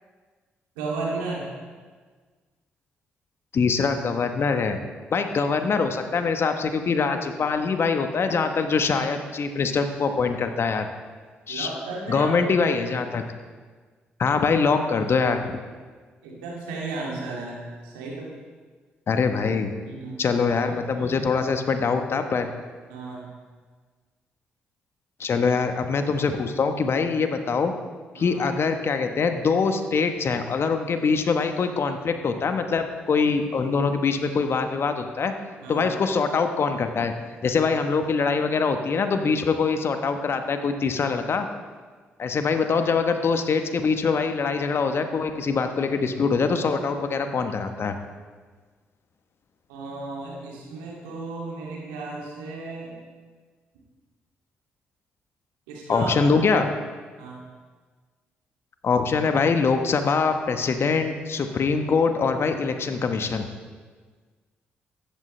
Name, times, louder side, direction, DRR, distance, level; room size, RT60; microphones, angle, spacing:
voice 1, 0.8-1.5 11.5-12.3 16.2-18.3 19.9-20.2 20.9-21.3 22.9-23.3 28.2-28.4 35.6-35.9 49.7-53.0 55.7-56.1 57.2-57.4, right 3 dB, 85° right, -3 dB, 2.5 m, -34 dB
voice 2, 3.5-4.8 5.1-10.9 11.5-11.7 12.1-13.2 14.2-15.6 19.1-19.7 20.2-22.5 25.2-27.7 28.1-35.3 35.7-37.1 37.4-41.5 42.2-48.0 55.9-56.7 58.8-63.5, left 5 dB, 50° left, 7 dB, 1.1 m, -23 dB
14.0 x 11.5 x 3.3 m, 1.5 s
hypercardioid pair, 45°, 5 cm